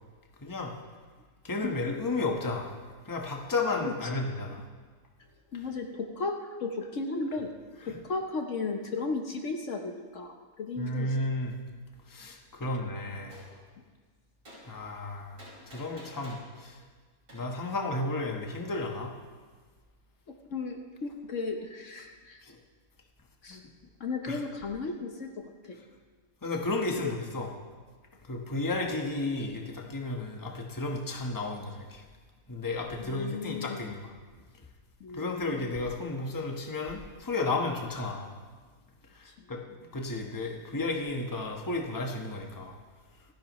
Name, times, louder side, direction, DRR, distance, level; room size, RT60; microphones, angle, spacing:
voice 1, 0.4-0.7 1.4-2.7 3.0-4.6 7.8-8.0 10.8-11.6 12.1-13.4 14.7-15.4 15.7-16.8 17.3-19.1 22.5-22.6 23.5-23.6 24.3-24.4 26.4-27.5 28.3-32.0 32.5-34.1 35.1-38.3 39.1-39.6 39.9-42.8, left 2 dB, 15° left, 1 dB, 1.1 m, -33 dB
voice 2, 5.5-7.5 7.8-11.2 12.6-12.7 20.5-22.4 23.4-23.6 24.0-25.8 27.0-27.1 33.0-33.8 35.0-35.7, left 3 dB, 60° left, 4 dB, 1.2 m, -35 dB
Gunshot gunfire, 13.3-13.5 14.5-14.6 15.4-16.5 17.3-17.4, equal, 65° right, 5.8 m, -49 dB
27.0 x 10.5 x 3.1 m, 1.5 s
omnidirectional pair, 1.6 m